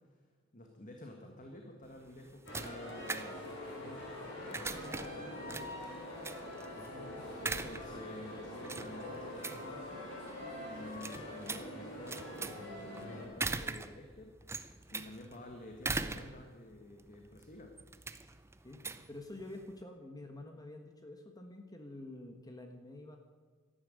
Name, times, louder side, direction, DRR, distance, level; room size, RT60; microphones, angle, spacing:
voice 1, 0.5-3.5 3.8-6.0 7.4-10.1 10.6-17.7, left 1 dB, 40° left, 3 dB, 1.6 m, -50 dB
sound 1, 1.8-19.8, right 3 dB, 10° right, 0.6 m, -43 dB
sound 2, 2.5-13.2, left 1 dB, 60° left, 5.6 m, -44 dB
voice 2, 6.7-7.3 18.6-23.2, left 2 dB, 20° left, 4 dB, 1.3 m, -48 dB
13.0 x 11.5 x 8.9 m, 1.5 s
head